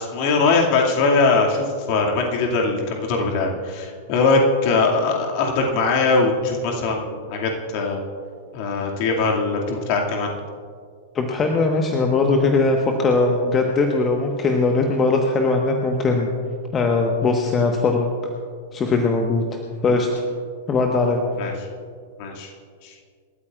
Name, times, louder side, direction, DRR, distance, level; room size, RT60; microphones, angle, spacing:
voice 1, 0.0-8.0 8.5-10.3 21.4-21.6 22.2-22.5 22.8-22.9, left 3 dB, 40° left, 0 dB, 2.3 m, -21 dB
voice 2, 11.1-16.3 16.7-18.1 18.7-20.2 20.7-21.2, left 3 dB, 20° left, 2 dB, 1.3 m, -20 dB
27.5 x 13.5 x 2.5 m, 2.1 s
figure-of-eight pair, 100°, 0 cm